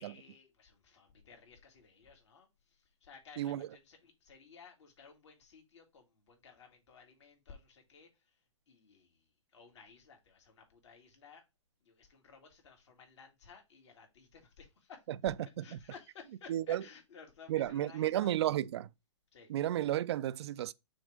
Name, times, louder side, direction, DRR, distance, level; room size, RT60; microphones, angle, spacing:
voice 1, 0.0-8.1 8.7-9.2 9.5-11.4 11.8-15.0 15.6-18.3 19.3-19.5, left 5 dB, 65° left, 2.8 m, -56 dB
voice 2, 3.4-3.7 15.2-15.8 16.5-16.8 17.5-18.9 19.5-20.7, right 12 dB, 55° right, 0.4 m, -33 dB
6.2 x 3.4 x 5.1 m
hypercardioid pair, 130°, 16 cm